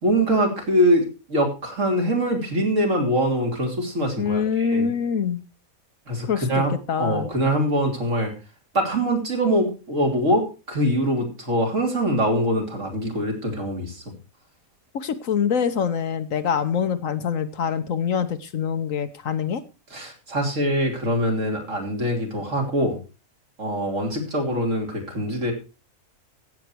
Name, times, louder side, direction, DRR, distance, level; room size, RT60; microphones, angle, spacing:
voice 1, 0.0-4.9 6.1-6.7 7.0-8.3 8.7-14.1 19.9-23.0 23.6-25.5, equal, 60° right, 2 dB, 3.6 m, -23 dB
voice 2, 4.2-5.4 6.2-7.3 14.9-19.6, left 7 dB, 70° left, 9 dB, 1.3 m, -25 dB
15.0 x 8.3 x 4.5 m, 0.31 s
omnidirectional pair, 1.5 m